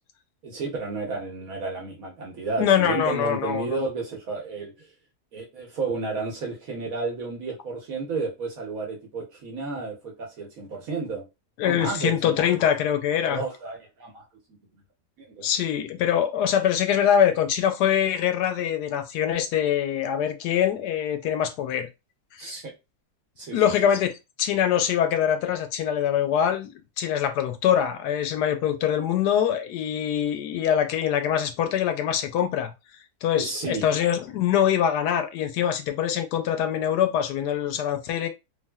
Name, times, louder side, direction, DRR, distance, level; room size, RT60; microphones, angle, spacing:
voice 1, 0.4-4.9 5.3-11.2 11.6-12.3 13.3-14.2 15.2-15.5 22.4-22.7 23.4-23.6 33.3-33.9, right 4 dB, 65° right, 1.1 m, -32 dB
voice 2, 2.6-3.9 11.6-13.4 15.4-21.9 22.3-22.5 23.5-24.1 24.4-32.7 33.2-38.3, left 9 dB, 80° left, 1.1 m, -24 dB
3.4 x 2.5 x 2.2 m
omnidirectional pair, 1.7 m